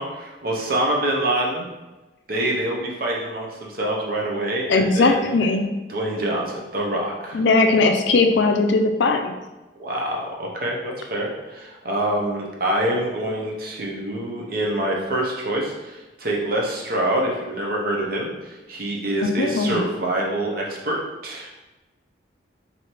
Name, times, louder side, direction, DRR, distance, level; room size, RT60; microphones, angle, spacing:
voice 1, 0.0-1.7 2.3-5.3 5.9-7.4 9.8-21.0 21.2-21.5, right 1 dB, 50° right, -2 dB, 0.7 m, -26 dB
voice 2, 4.7-5.6 7.3-9.3 19.2-19.8, left 3 dB, 70° left, 5 dB, 0.4 m, -19 dB
3.1 x 2.8 x 4.3 m, 1.1 s
head